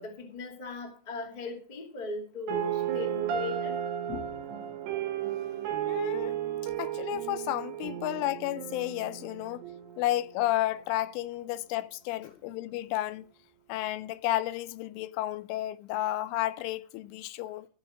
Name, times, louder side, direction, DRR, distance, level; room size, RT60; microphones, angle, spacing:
voice 1, 0.0-3.7 12.2-12.3, left 2 dB, 60° left, 0.4 m, -38 dB
sound 1, 2.5-10.5, right 10 dB, 70° right, 3.9 m, -34 dB
voice 2, 5.9-6.4 6.8-9.6 10.0-13.3 13.7-17.7, left 15 dB, 90° left, 3.2 m, -32 dB
15.5 x 5.7 x 6.2 m
omnidirectional pair, 5.5 m